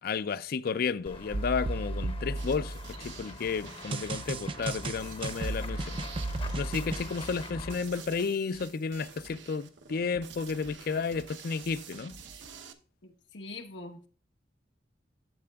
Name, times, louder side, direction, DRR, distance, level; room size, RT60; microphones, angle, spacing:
voice 1, 0.0-6.0 6.5-12.1, left 5 dB, 55° left, 0.4 m, -32 dB
Run / Walk footsteps / Bell, 1.1-7.8, left 3 dB, 30° left, 0.8 m, -44 dB
sound 1, 1.3-3.2 3.9-7.0, right 2 dB, 30° right, 0.4 m, -34 dB
sound 2, 2.4-12.7, right 5 dB, 85° right, 0.8 m, -48 dB
voice 2, 13.0-14.1, left 2 dB, 80° left, 1.1 m, -43 dB
12.0 x 7.6 x 2.3 m
head